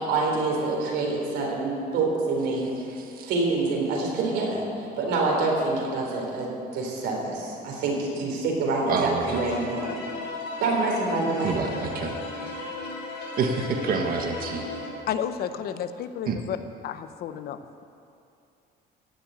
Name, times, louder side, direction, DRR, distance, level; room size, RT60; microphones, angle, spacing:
voice 1, 0.0-2.7 3.2-4.6 5.0-9.9 10.6-11.5, right 3 dB, 85° right, -1 dB, 3.7 m, -26 dB
voice 2, 3.0-3.3 8.9-9.4 11.4-12.1 13.4-14.7 16.3-16.4, right 5 dB, 60° right, 3 dB, 1.4 m, -27 dB
sound 1, 9.3-14.9, left 3 dB, 90° left, 3.7 m, -35 dB
voice 3, 15.1-16.6 16.8-17.8, left 9 dB, 65° left, 10 dB, 0.8 m, -32 dB
15.0 x 7.2 x 9.0 m, 2.6 s
cardioid pair, 110°, 17 cm